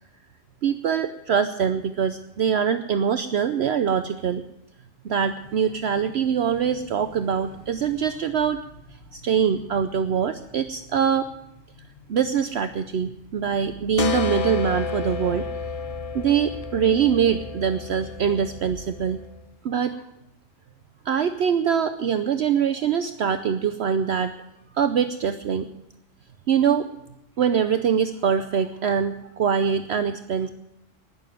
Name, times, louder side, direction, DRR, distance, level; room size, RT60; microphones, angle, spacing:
voice 1, 0.6-4.4 5.0-8.6 9.1-11.3 12.1-15.5 16.1-19.2 19.6-20.0 21.0-24.3 24.7-25.7 26.5-26.9 27.4-30.5, right 7 dB, 60° right, 10 dB, 0.9 m, -23 dB
sound 1, 5.0-19.3, left 2 dB, 85° left, 5.1 m, -47 dB
sound 2, 14.0-19.4, left 5 dB, 40° left, 0.6 m, -31 dB
19.0 x 7.2 x 9.1 m, 0.86 s
omnidirectional pair, 1.3 m